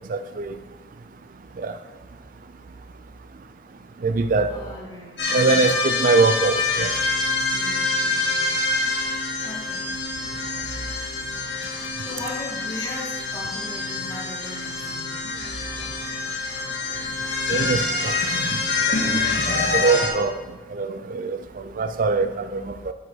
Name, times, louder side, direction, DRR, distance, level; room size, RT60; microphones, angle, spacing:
voice 1, 0.1-0.5 1.6-1.7 4.0-4.5 5.3-6.9 17.5-18.1 19.7-20.3 20.7-21.4 21.8-22.9, right 4 dB, 50° right, 0.4 m, -22 dB
voice 2, 4.5-5.6 7.5-8.6 9.0-9.9 12.0-15.1 19.6-19.9, left 1 dB, 25° left, 2.0 m, -38 dB
sound 1, 5.2-20.1, left 3 dB, 80° left, 1.8 m, -26 dB
8.0 x 5.1 x 6.3 m
head